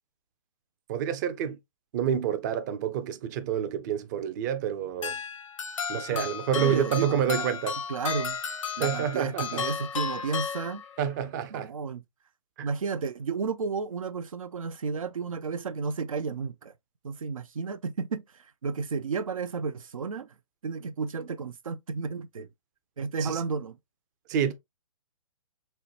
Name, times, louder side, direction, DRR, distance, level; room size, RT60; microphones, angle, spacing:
voice 1, 0.9-1.6 1.9-5.2 5.9-7.8 8.8-9.7 11.0-11.7 12.6-12.7 23.2-23.4 24.3-24.5, right 9 dB, 35° right, 0.5 m, -28 dB
sound 1, 5.0-11.2, left 6 dB, 70° left, 0.6 m, -34 dB
voice 2, 6.5-7.6 7.9-8.4 8.8-10.8 11.5-12.0 12.6-16.7 17.0-20.3 20.6-22.5 23.0-23.8, right 5 dB, 85° right, 0.4 m, -32 dB
4.3 x 2.1 x 2.8 m
hypercardioid pair, 130°, 17 cm